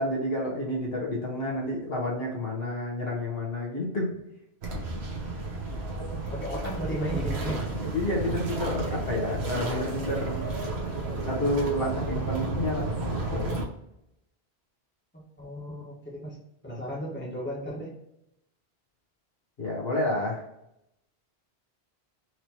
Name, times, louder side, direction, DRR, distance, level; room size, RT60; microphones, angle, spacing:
voice 1, 0.0-4.1 7.9-10.4 11.2-13.6 19.6-20.4, left 1 dB, 65° left, -3 dB, 1.5 m, -30 dB
sound 1, 4.6-13.6, right 3 dB, 75° right, 1.2 m, -32 dB
voice 2, 6.2-7.7 15.4-16.4 16.6-17.9, equal, 10° left, -6 dB, 1.5 m, -34 dB
4.7 x 3.2 x 2.8 m, 0.82 s
omnidirectional pair, 1.1 m